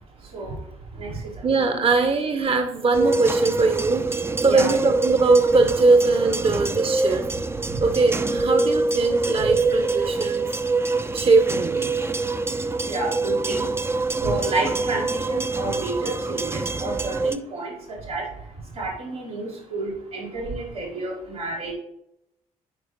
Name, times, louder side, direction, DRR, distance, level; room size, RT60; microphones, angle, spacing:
voice 1, 0.2-1.8 4.5-4.7 7.6-7.8 9.3-9.5 10.7-11.2 11.9-12.3 12.5-21.7, right 2 dB, 85° right, -7 dB, 2.2 m, -31 dB
voice 2, 1.4-7.3 7.8-10.6 11.1-12.0, right 3 dB, 30° right, 7 dB, 0.9 m, -21 dB
sound 1, 2.9-17.4, right 3 dB, 15° right, 0.5 m, -25 dB
9.8 x 4.8 x 3.2 m, 0.81 s
figure-of-eight pair, 40°, 18 cm